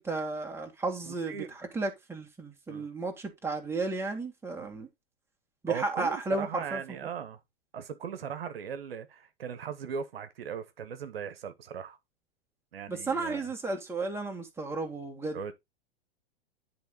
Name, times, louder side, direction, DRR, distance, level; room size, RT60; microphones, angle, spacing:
voice 1, 0.0-1.4 1.7-4.9 5.6-6.8 12.9-15.5, right 3 dB, 10° right, 2.1 m, -33 dB
voice 2, 1.0-1.5 2.7-2.9 4.6-4.9 5.7-7.4 7.7-12.0 12.7-13.4 15.3-15.5, right 7 dB, 70° right, 1.1 m, -39 dB
10.5 x 3.8 x 3.8 m
figure-of-eight pair, 100°, 30 cm